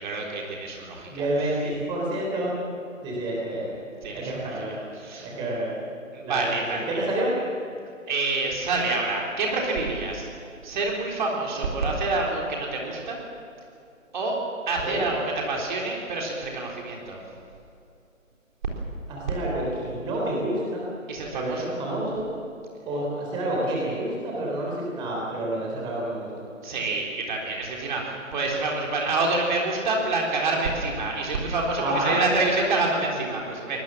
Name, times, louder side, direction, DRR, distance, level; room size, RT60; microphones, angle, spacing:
voice 1, 0.0-1.3 4.0-4.4 4.7-5.3 6.1-7.1 8.1-10.3 10.6-13.2 14.1-14.4 14.7-17.2 21.1-21.6 26.6-33.8, right 3 dB, 35° right, -1 dB, 3.9 m, -27 dB
voice 2, 1.1-2.7 3.0-3.8 4.1-4.8 5.2-5.8 6.2-7.3 14.8-15.0 19.1-20.8 21.3-22.3 22.9-26.3 31.8-32.2, right 1 dB, 10° right, -3 dB, 3.7 m, -29 dB
24.0 x 20.0 x 7.5 m, 2.5 s
figure-of-eight pair, 150°, 40 cm